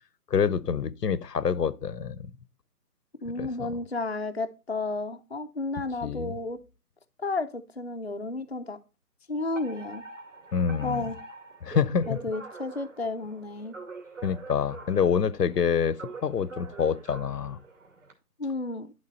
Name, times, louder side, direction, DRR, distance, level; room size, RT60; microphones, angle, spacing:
voice 1, 0.3-2.2 3.4-3.7 6.0-6.4 10.5-11.0 11.6-12.2 14.2-17.6, left 7 dB, 85° left, 0.8 m, -27 dB
voice 2, 3.2-6.6 7.2-8.8 9.3-10.0 10.8-11.2 12.1-13.8 18.4-18.9, left 2 dB, 45° left, 0.5 m, -32 dB
Alarm, 9.5-18.1, right 3 dB, 50° right, 2.4 m, -45 dB
11.0 x 3.8 x 3.9 m
figure-of-eight pair, 175°, 47 cm